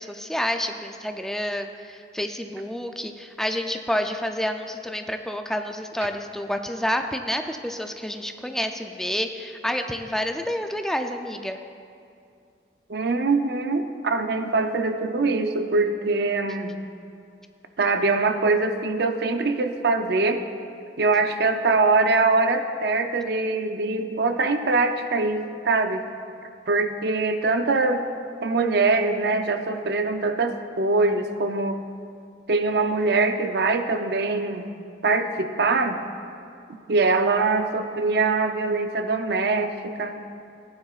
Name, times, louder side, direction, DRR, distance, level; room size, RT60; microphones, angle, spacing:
voice 1, 0.0-11.6, equal, 5° left, 6 dB, 0.4 m, -29 dB
voice 2, 12.9-16.7 17.8-20.4 21.0-26.1 26.7-28.1 28.4-31.8 32.5-34.7 35.0-36.0 36.9-40.1, right 3 dB, 60° right, 7 dB, 0.6 m, -23 dB
15.0 x 9.6 x 2.4 m, 2.4 s
head